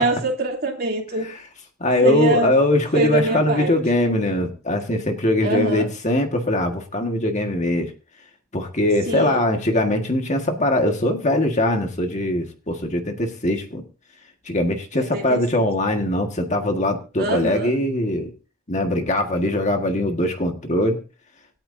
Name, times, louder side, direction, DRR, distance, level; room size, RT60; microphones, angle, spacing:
voice 1, 0.0-1.3 2.0-2.5 2.9-3.8 5.4-5.9 9.1-9.4 14.9-15.6 17.2-17.7, right 2 dB, 45° right, 1 dB, 2.9 m, -24 dB
voice 2, 1.8-7.9 8.5-13.8 14.5-18.3 18.7-21.0, left 1 dB, 30° left, 4 dB, 1.7 m, -21 dB
26.0 x 8.9 x 2.7 m, 0.35 s
head